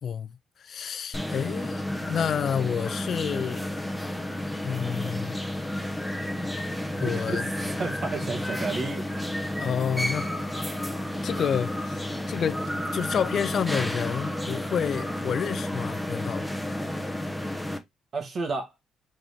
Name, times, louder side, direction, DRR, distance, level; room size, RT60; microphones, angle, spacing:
voice 1, 0.0-3.6 4.6-5.4 7.0-7.4 9.6-10.3 11.2-12.6 12.9-16.5, left 8 dB, 55° left, 0.3 m, -29 dB
sound 1, 1.1-17.8, left 1 dB, 5° left, 1.0 m, -31 dB
voice 2, 7.0-7.4 7.7-9.0 18.1-18.7, right 3 dB, 50° right, 1.5 m, -31 dB
4.0 x 3.6 x 3.3 m
cardioid pair, 90°, 0 cm